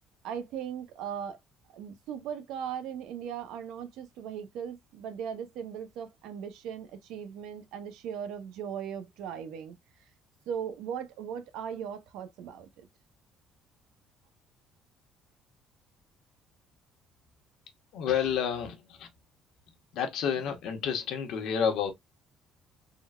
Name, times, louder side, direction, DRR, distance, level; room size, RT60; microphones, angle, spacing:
voice 1, 0.2-1.4 1.7-9.8 10.5-12.9, right 8 dB, 85° right, 0.6 m, -38 dB
voice 2, 17.9-19.1 19.9-21.9, left 7 dB, 65° left, 0.9 m, -30 dB
3.7 x 2.1 x 2.2 m
cardioid pair, 155°, 0 cm